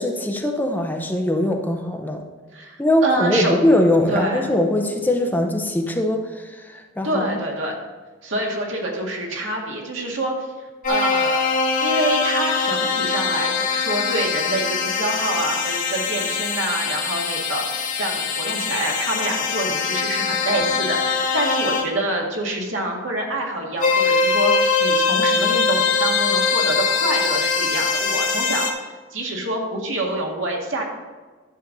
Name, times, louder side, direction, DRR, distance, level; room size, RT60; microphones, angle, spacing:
voice 1, 0.0-2.2 2.8-7.4, left 1 dB, 10° left, 3 dB, 0.7 m, -21 dB
voice 2, 2.5-3.6 4.1-4.5 7.0-7.7 8.2-10.5 10.9-11.5 11.8-28.7 29.1-30.8, right 1 dB, 75° right, 0 dB, 1.9 m, -26 dB
sound 1, 10.8-21.9 23.8-28.7, left 5 dB, 40° left, 1.2 m, -22 dB
11.0 x 6.9 x 4.0 m, 1.4 s
head